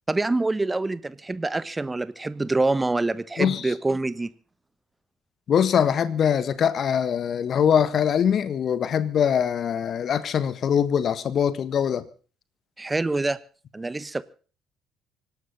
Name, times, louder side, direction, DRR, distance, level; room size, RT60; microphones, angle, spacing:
voice 1, 0.1-4.3 12.8-13.4 13.7-14.2, right 2 dB, 20° right, 1.2 m, -26 dB
voice 2, 3.4-3.7 5.5-12.0, left 8 dB, 50° left, 1.6 m, -23 dB
25.5 x 12.0 x 3.9 m
figure-of-eight pair, 50°, 0 cm